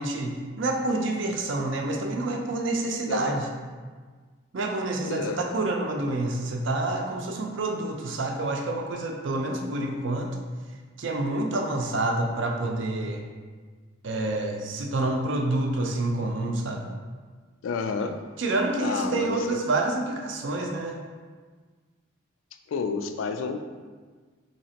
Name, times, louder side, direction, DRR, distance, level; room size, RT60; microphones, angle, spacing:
voice 1, 0.0-3.5 4.5-10.4 11.0-13.2 14.0-16.9 18.4-21.0, right 2 dB, 65° right, 3 dB, 0.4 m, -28 dB
voice 2, 3.1-3.4 5.0-5.4 17.6-18.2 18.8-19.6 22.7-23.6, left 5 dB, 75° left, 7 dB, 0.3 m, -30 dB
4.1 x 2.8 x 2.8 m, 1.5 s
head